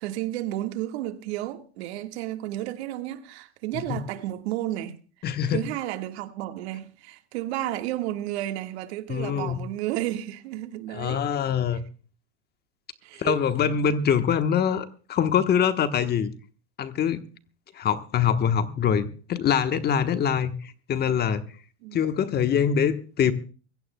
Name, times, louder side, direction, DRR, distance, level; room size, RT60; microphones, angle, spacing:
voice 1, 0.0-11.3 13.0-13.4 21.8-22.1, right 14 dB, 65° right, 1.7 m, -32 dB
voice 2, 5.2-5.6 9.1-9.6 10.9-11.8 13.2-16.3 16.8-17.2 17.7-21.4 21.9-23.3, left 8 dB, 30° left, 1.1 m, -24 dB
24.0 x 16.5 x 2.2 m
supercardioid pair, 120°, 34 cm